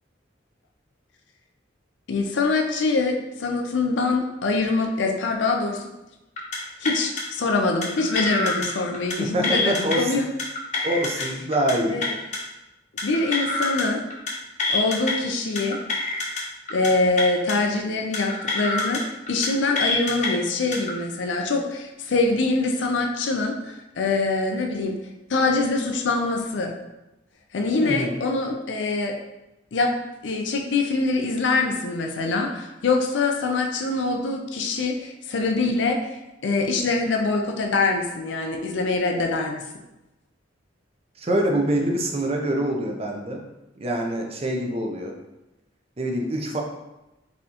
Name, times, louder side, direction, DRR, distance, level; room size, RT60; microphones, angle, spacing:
voice 1, 2.1-5.8 6.8-10.2 11.2-11.3 11.9-12.1 13.0-14.0 14.7-15.8 16.7-19.0 19.3-25.0 25.3-26.7 27.5-29.2 29.7-29.9 30.2-36.1 36.4-39.6, left 3 dB, 70° left, 2 dB, 0.5 m, -24 dB
sound 1, 6.4-6.6 6.8-7.2 7.8-8.7 8.9-9.2 9.4-10.0 10.4-11.3 11.5-11.7 12.0-12.4 13.0-13.8 14.1-14.3 14.6-15.1 15.6-16.4 16.7-16.9 17.2-17.5 18.1-19.0 19.3-19.5 19.8-20.3 20.7-20.9, left 3 dB, 40° left, 0.8 m, -26 dB
voice 2, 9.2-10.2 10.8-12.0 27.8-28.2 41.2-43.4 43.8-45.1 46.0-46.6, right 1 dB, 35° right, 2 dB, 0.6 m, -25 dB
4.1 x 3.7 x 2.9 m, 0.96 s
head